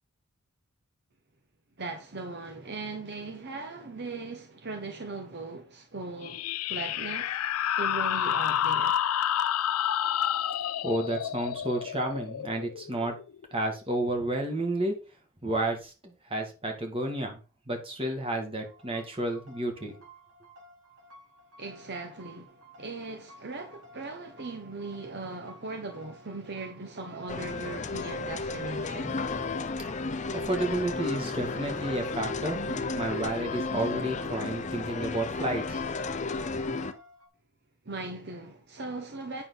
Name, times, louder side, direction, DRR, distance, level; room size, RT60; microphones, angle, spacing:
voice 1, 1.8-7.4 7.8-9.0 21.6-29.3 37.8-39.4, right 3 dB, 50° right, 1.1 m, -39 dB
sound 1, 6.2-13.5, left 10 dB, 85° left, 0.4 m, -29 dB
voice 2, 10.8-13.1 13.5-14.9 15.4-17.4 17.7-19.9 30.3-35.8, right 1 dB, 25° right, 2.3 m, -31 dB
sound 2, 18.5-37.3, right 1 dB, 80° right, 3.1 m, -54 dB
sound 3, 27.3-36.9, left 3 dB, 35° left, 0.7 m, -33 dB
8.6 x 6.6 x 4.0 m
head